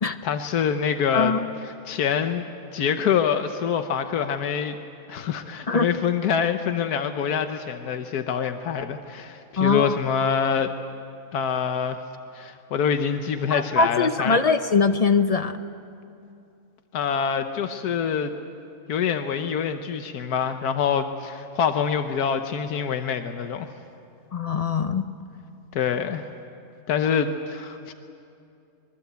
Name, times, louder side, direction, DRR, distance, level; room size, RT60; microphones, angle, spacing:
voice 1, 0.2-1.3 1.8-2.4 2.7-4.8 5.1-10.7 11.3-12.0 12.3-14.4 16.9-18.3 18.9-23.7 25.7-26.3 26.9-27.9, left 7 dB, 90° left, 8 dB, 1.4 m, -25 dB
voice 2, 1.1-1.5 5.7-5.9 9.6-9.9 13.5-15.6 24.3-25.1, left 4 dB, 45° left, 10 dB, 0.5 m, -22 dB
24.5 x 22.5 x 8.1 m, 2.6 s
omnidirectional pair, 1.6 m